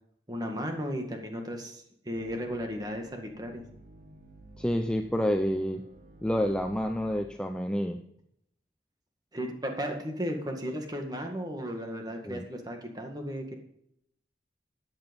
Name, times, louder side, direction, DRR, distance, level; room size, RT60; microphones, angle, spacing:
voice 1, 0.3-3.6 9.3-13.5, equal, 20° right, 3 dB, 1.9 m, -35 dB
sound 1, 2.2-7.2, right 1 dB, 50° right, 2.0 m, -52 dB
voice 2, 4.6-5.8 6.2-8.0 12.2-12.4, equal, 5° left, 5 dB, 0.6 m, -28 dB
14.0 x 9.0 x 5.3 m, 0.73 s
head